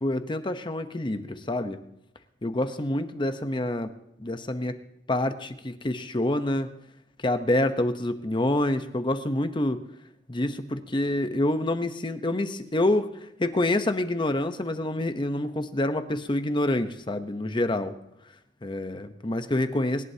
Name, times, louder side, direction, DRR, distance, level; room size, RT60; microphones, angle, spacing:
voice 1, 0.0-1.8 2.4-3.9 4.2-4.8 5.1-6.7 7.2-9.8 10.3-13.1 13.4-17.9 18.6-20.0, left 1 dB, 30° left, 9 dB, 0.9 m, -27 dB
25.5 x 11.5 x 2.8 m, 0.83 s
head